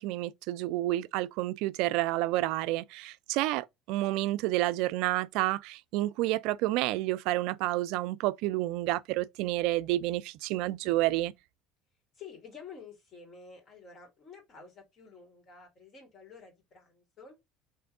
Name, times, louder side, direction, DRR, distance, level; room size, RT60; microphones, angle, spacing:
voice 1, 0.0-11.3, right 17 dB, 70° right, 0.3 m, -30 dB
voice 2, 12.1-17.4, left 5 dB, 45° left, 2.2 m, -50 dB
3.5 x 3.0 x 4.6 m
hypercardioid pair, 75°, 0 cm